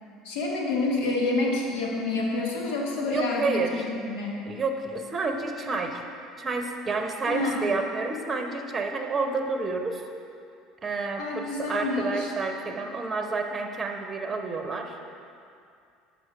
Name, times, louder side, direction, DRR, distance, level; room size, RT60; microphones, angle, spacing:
voice 1, 0.2-4.4 7.3-7.6 11.2-12.3, left 2 dB, 75° left, -1 dB, 1.1 m, -28 dB
voice 2, 3.1-3.9 4.5-6.0 6.4-10.0 10.8-14.9, right 3 dB, 30° right, 4 dB, 0.7 m, -29 dB
6.4 x 5.0 x 4.9 m, 2.4 s
hypercardioid pair, 70°, 0 cm